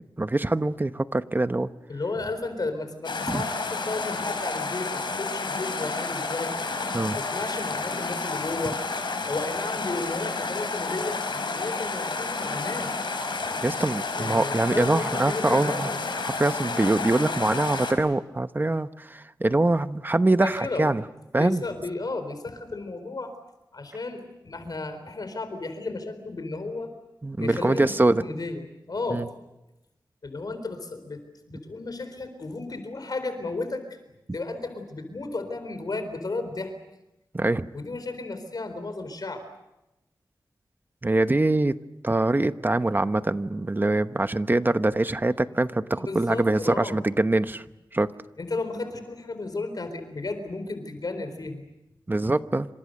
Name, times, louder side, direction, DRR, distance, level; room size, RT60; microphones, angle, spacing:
voice 1, 0.2-1.7 3.3-3.4 6.9-7.2 13.6-15.9 16.2-21.0 21.3-21.6 27.2-28.2 29.1-29.3 37.3-37.7 41.0-41.8 42.0-47.6 47.9-48.1 52.1-52.7, right 2 dB, 25° right, 11 dB, 1.0 m, -24 dB
voice 2, 1.9-6.6 7.0-8.8 9.3-12.9 14.2-16.0 20.4-20.9 21.4-23.3 23.7-26.9 27.4-27.9 28.2-29.3 30.2-31.2 31.5-34.0 34.3-36.7 37.7-39.4 46.0-47.0 48.4-51.7, left 3 dB, 55° left, 9 dB, 4.1 m, -33 dB
sound 1, 3.0-17.9, left 3 dB, 85° left, 4.8 m, -30 dB
28.5 x 26.0 x 6.6 m, 0.93 s
wide cardioid pair, 95°, 8 cm